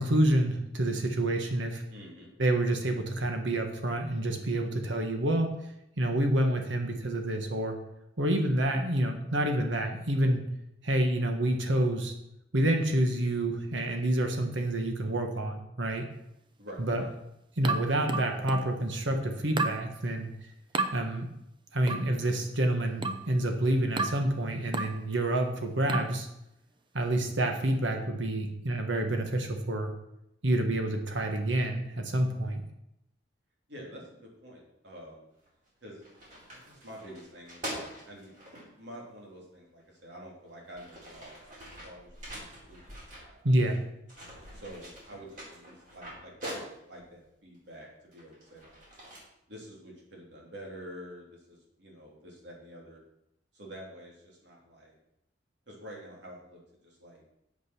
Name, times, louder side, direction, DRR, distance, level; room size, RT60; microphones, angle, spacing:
voice 1, 0.0-1.8 2.4-5.5 6.0-7.8 8.2-10.4 10.8-12.1 12.5-16.1 16.8-17.0 17.6-20.3 20.9-21.3 21.7-26.3 26.9-29.9 30.4-32.6 43.4-43.8, right 1 dB, 85° right, 4 dB, 1.4 m, -28 dB
voice 2, 1.9-2.3 16.6-17.1 33.7-35.3 35.8-36.0 36.5-38.3 38.8-42.1 42.7-42.8 43.1-43.5 44.5-48.8 49.5-53.0 53.5-55.0 55.7-57.2, equal, 65° right, -2 dB, 3.3 m, -48 dB
sound 1, 17.6-18.8 19.6-19.8 20.7-21.0 21.9-22.1 23.0-23.3 24.0-24.3 24.7-25.0 25.9-26.2, right 3 dB, 25° right, 0.7 m, -32 dB
sound 2, 35.5-35.7 36.0-38.6 39.8-39.9 40.5-43.8 44.1-47.1 47.7-49.2, equal, 45° right, 4.8 m, -44 dB
8.5 x 7.9 x 6.1 m, 0.82 s
head